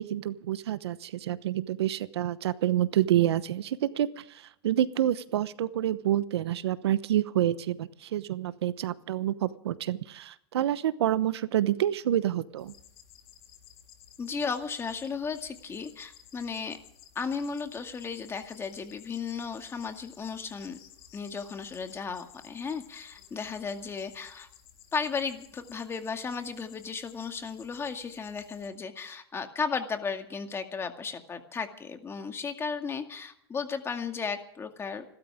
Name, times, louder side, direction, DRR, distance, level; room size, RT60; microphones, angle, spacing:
voice 1, 0.0-12.7, right 12 dB, 80° right, 15 dB, 1.0 m, -28 dB
sound 1, 12.6-28.7, left 10 dB, 65° left, 3.8 m, -55 dB
voice 2, 14.2-16.8 17.2-20.8 21.1-24.5 24.9-35.0, left 5 dB, 20° left, 6 dB, 2.1 m, -35 dB
28.5 x 13.0 x 3.6 m, 0.72 s
hypercardioid pair, 120°, 13 cm